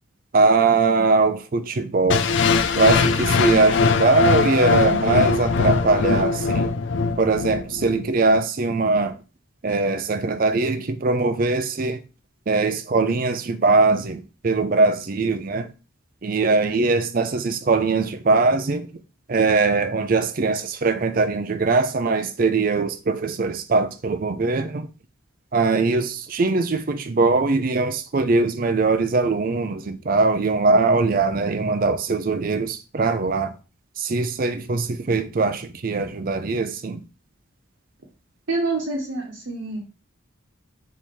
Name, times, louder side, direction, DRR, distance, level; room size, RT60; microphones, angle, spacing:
voice 1, 0.3-2.2 2.7-6.7 7.2-9.2 9.6-12.0 12.5-15.7 16.2-18.9 19.3-24.9 25.5-33.5 34.0-37.0, right 3 dB, 45° right, 0.4 m, -21 dB
sound 1, 2.1-8.1, left 4 dB, 60° left, 0.4 m, -21 dB
voice 2, 38.5-39.8, right 3 dB, 65° right, 1.0 m, -26 dB
3.5 x 3.1 x 4.3 m
head